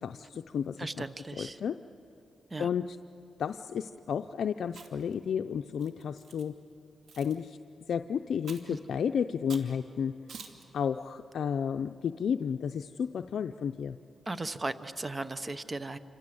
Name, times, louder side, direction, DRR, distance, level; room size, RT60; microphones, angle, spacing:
voice 1, 0.0-1.0 1.4-1.8 2.6-3.0 3.4-6.5 7.2-7.6 7.9-10.1 10.7-14.0, left 7 dB, 75° left, 7 dB, 0.5 m, -32 dB
voice 2, 0.8-1.6 2.5-2.7 8.7-8.8 14.3-16.0, right 2 dB, 25° right, 12 dB, 0.9 m, -36 dB
Chewing mastication, 4.7-5.1 5.8-6.4 7.1-7.4 8.4-8.8 9.5-9.7 10.3-10.6, right 5 dB, 80° right, 2.3 m, -47 dB
28.5 x 26.0 x 7.8 m, 2.8 s
cardioid pair, 95°, 0 cm